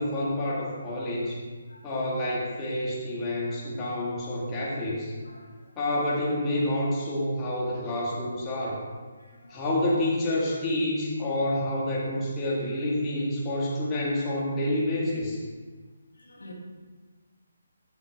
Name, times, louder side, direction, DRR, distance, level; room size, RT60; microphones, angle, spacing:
voice 1, 0.0-1.4 1.8-5.1 5.8-8.8 9.5-15.4, left 1 dB, 20° left, -6 dB, 1.7 m, -28 dB
voice 2, 5.2-5.7 9.2-9.6 16.2-16.5, left 2 dB, 85° left, 0 dB, 1.5 m, -50 dB
8.3 x 6.1 x 3.4 m, 1.4 s
figure-of-eight pair, 150°, 0 cm